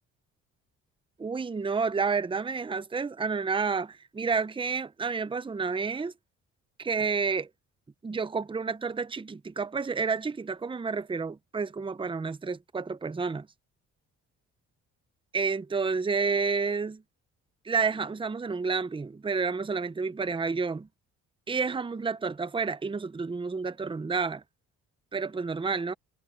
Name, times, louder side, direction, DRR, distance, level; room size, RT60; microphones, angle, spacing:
voice 1, 1.2-6.1 6.8-7.5 8.0-13.5 15.3-17.0 17.6-20.9 21.5-24.4 25.1-25.9, right 5 dB, 15° right, 0.7 m, -30 dB
cardioid pair, 90°, 30 cm